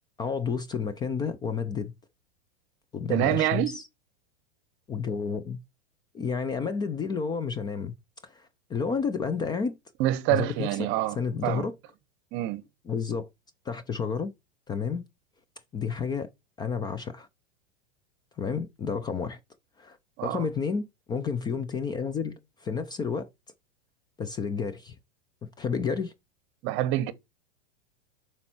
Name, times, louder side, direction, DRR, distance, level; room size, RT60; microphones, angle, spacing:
voice 1, 0.2-1.9 2.9-3.9 4.9-5.6 6.1-7.9 8.2-9.8 10.3-11.7 12.9-13.3 13.7-14.3 14.7-15.1 15.7-16.3 16.6-17.3 18.4-19.4 19.8-20.0 20.2-23.3 24.2-25.0 25.4-26.1, left 5 dB, 15° left, 0.4 m, -31 dB
voice 2, 3.1-3.8 10.0-11.2 11.4-11.6 12.3-12.6 20.2-20.4 26.6-27.1, right 14 dB, 40° right, 0.9 m, -26 dB
7.0 x 4.4 x 4.3 m
hypercardioid pair, 130°, 30 cm